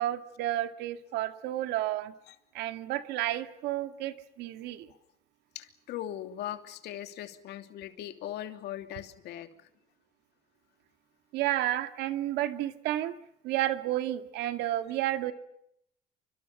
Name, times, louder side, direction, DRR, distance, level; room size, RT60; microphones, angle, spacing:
voice 1, 0.0-2.1 2.5-4.9 11.3-13.1 13.4-15.3, right 14 dB, 90° right, 9 dB, 2.2 m, -31 dB
voice 2, 5.5-9.7, left 12 dB, 80° left, 8 dB, 2.9 m, -40 dB
29.0 x 26.0 x 5.6 m, 0.75 s
cardioid pair, 110°, 17 cm